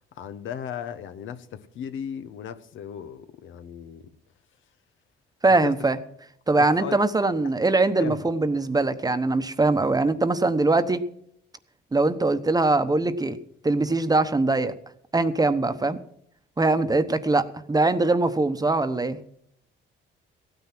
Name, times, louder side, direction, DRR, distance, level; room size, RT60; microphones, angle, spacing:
voice 1, 0.1-4.1 5.6-5.8 6.6-7.0 7.4-7.5 8.0-8.3 16.9-17.0, left 8 dB, 75° left, 1.1 m, -36 dB
voice 2, 5.4-6.0 6.5-11.0 11.9-13.4 13.6-14.7 15.1-16.0 16.6-19.2, right 2 dB, 20° right, 1.0 m, -22 dB
15.5 x 9.4 x 6.0 m
cardioid pair, 90°, 20 cm